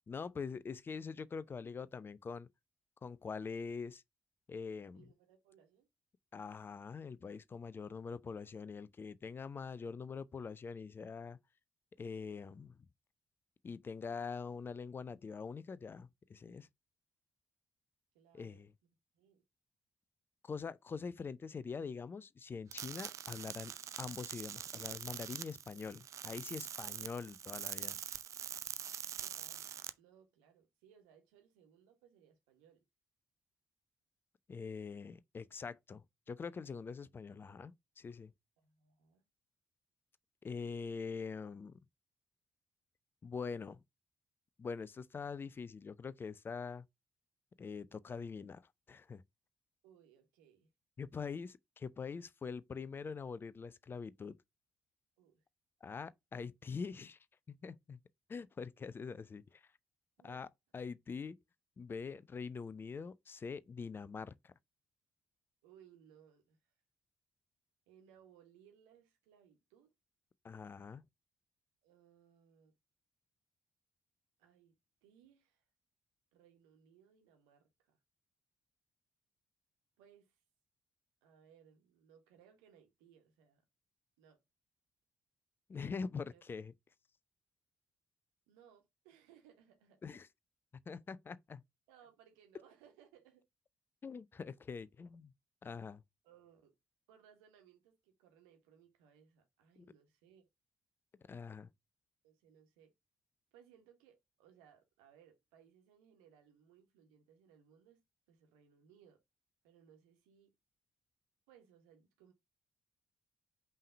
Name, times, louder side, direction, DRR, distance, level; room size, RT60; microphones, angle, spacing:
voice 1, 0.1-2.5 3.0-4.0 4.5-5.1 6.3-11.4 12.0-12.7 13.6-16.7 18.3-18.7 20.4-23.7 24.0-28.0 34.5-38.3 40.4-41.7 43.2-43.8 44.6-46.8 47.6-48.6 48.9-49.2 51.0-54.3 55.8-57.2 57.5-58.0 58.3-59.6 60.2-60.5 60.7-61.4 61.8-64.5 70.4-71.0 85.7-86.7 90.0-90.3 90.9-91.6 94.0-95.3 95.6-96.0 101.3-101.7, left 5 dB, 30° left, 0.5 m, -44 dB
voice 2, 4.9-5.9 12.2-12.3 18.1-18.7 19.1-19.4 29.2-29.6 30.0-32.8 38.6-39.2 49.8-50.7 55.2-55.4 60.2-60.5 65.6-66.6 67.9-69.9 71.8-72.7 74.4-75.6 76.3-78.0 80.0-80.4 81.2-83.6 84.2-84.4 86.3-86.4 88.5-90.2 91.9-93.5 96.2-96.7 97.1-100.5 102.2-102.9 103.5-109.2 109.6-110.5 111.5-112.3, right 8 dB, 70° right, 1.3 m, -65 dB
sound 1, 22.7-29.9, right 9 dB, 45° right, 0.5 m, -44 dB
5.5 x 3.3 x 5.4 m
figure-of-eight pair, 40°, 7 cm